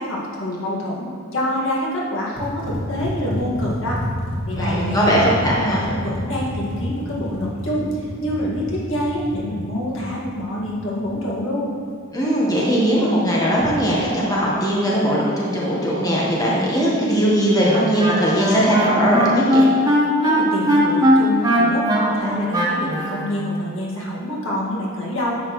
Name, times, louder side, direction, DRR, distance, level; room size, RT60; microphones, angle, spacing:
voice 1, 0.0-4.0 4.5-11.7 20.2-25.4, equal, 65° left, -5 dB, 1.9 m, -26 dB
sound 1, 2.3-11.2 13.5-13.9, left 1 dB, 85° left, 2.0 m, -29 dB
voice 2, 4.6-5.9 12.1-19.7, equal, 20° left, -5 dB, 1.2 m, -19 dB
Wind instrument woodwind instrument, 17.6-23.3, equal, 20° right, 1.2 m, -18 dB
10.0 x 7.3 x 3.1 m, 2.2 s
head